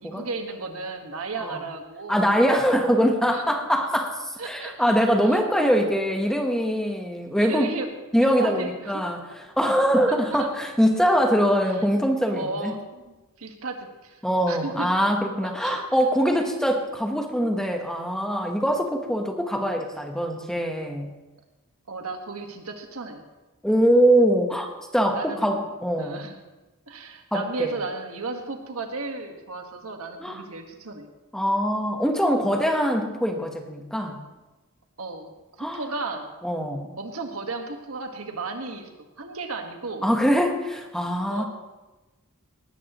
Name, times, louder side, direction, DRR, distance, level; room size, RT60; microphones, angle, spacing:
voice 1, 0.0-2.2 3.3-3.4 4.4-4.9 5.2-5.4 7.4-7.9 8.2-9.0 10.1-10.5 12.3-14.9 15.4-15.8 21.9-23.2 25.1-25.7 26.0-26.4 26.9-31.1 35.0-35.3 35.6-36.3 37.0-38.9 39.2-40.1 41.3-41.4, right 3 dB, 85° right, 4 dB, 1.6 m, -34 dB
voice 2, 2.1-7.7 8.1-12.7 14.2-21.1 23.6-24.7 24.9-26.3 27.3-27.7 30.2-30.4 31.3-34.2 35.6-35.8 36.4-36.9 40.0-41.4, equal, 5° left, 3 dB, 1.1 m, -23 dB
18.5 x 13.5 x 3.0 m, 1.1 s
head